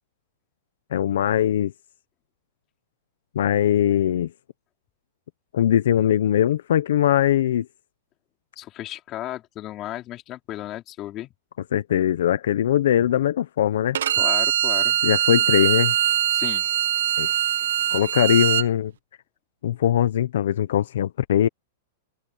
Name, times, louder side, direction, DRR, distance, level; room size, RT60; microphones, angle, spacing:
voice 1, 0.9-1.7 3.3-4.3 5.5-7.7 11.7-14.0 15.0-15.9 17.2-17.3 17.9-18.9 19.6-21.5, left 10 dB, 75° left, 0.9 m, -21 dB
voice 2, 8.6-11.3 13.0-13.1 14.2-15.0 16.3-16.7, left 14 dB, 25° left, 4.3 m, -34 dB
Bowed string instrument, 13.9-18.7, right 11 dB, 90° right, 1.5 m, -22 dB
supercardioid pair, 165°, 0 cm